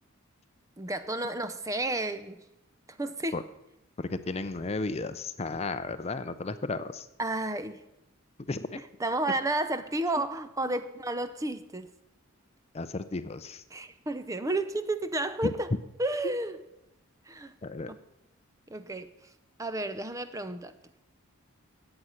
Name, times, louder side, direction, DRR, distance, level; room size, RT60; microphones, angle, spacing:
voice 1, 0.8-2.4 3.0-3.4 7.2-7.8 9.0-11.9 13.7-15.7 16.0-16.6 17.3-17.5 17.9-18.0 18.7-19.1 19.6-20.7, right 2 dB, 15° right, 11 dB, 0.6 m, -31 dB
voice 2, 4.0-7.1 8.5-8.8 10.2-10.3 10.6-10.7 12.7-13.6 15.4-15.5 17.6-17.9, left 3 dB, 30° left, 12 dB, 0.5 m, -34 dB
14.5 x 8.8 x 5.7 m, 0.91 s
head